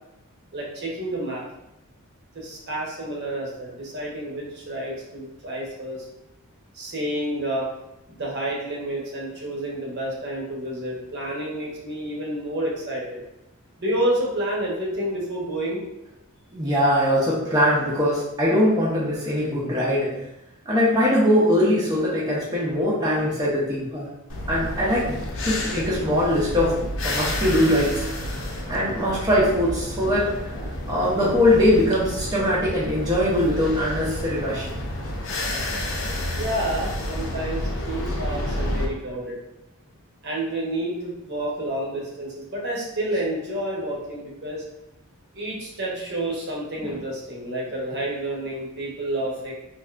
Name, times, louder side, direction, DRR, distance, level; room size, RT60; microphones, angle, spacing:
voice 1, 0.5-1.4 2.3-6.1 6.7-7.7 8.1-13.2 13.8-15.9 36.4-39.4 40.2-44.6 45.3-49.5, right 1 dB, 50° right, -3 dB, 0.8 m, -29 dB
voice 2, 16.5-20.1 20.7-24.0 24.5-25.1 25.4-26.7 27.0-28.0 28.7-30.3 30.9-34.8 46.8-46.9, left 1 dB, 20° right, -7 dB, 0.5 m, -21 dB
sound 1, 24.3-38.9, left 1 dB, 60° left, 0.5 m, -30 dB
3.2 x 2.6 x 2.4 m, 0.91 s
head